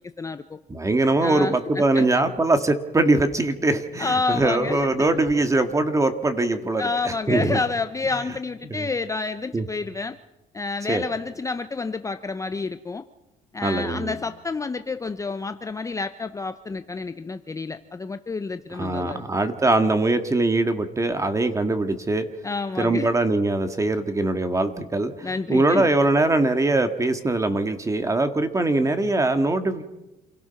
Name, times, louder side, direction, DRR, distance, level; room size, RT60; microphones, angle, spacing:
voice 1, 0.2-0.6 1.2-2.1 3.7-5.2 6.4-10.2 10.5-13.0 13.5-19.2 22.4-23.1 25.2-25.9, left 4 dB, 20° left, 10 dB, 0.7 m, -29 dB
voice 2, 0.7-7.6 8.8-8.9 9.5-9.6 10.9-11.0 13.6-14.1 18.8-22.3 22.8-29.8, right 2 dB, 20° right, 8 dB, 1.9 m, -22 dB
27.5 x 17.0 x 5.9 m, 1.0 s
cardioid pair, 110°, 17 cm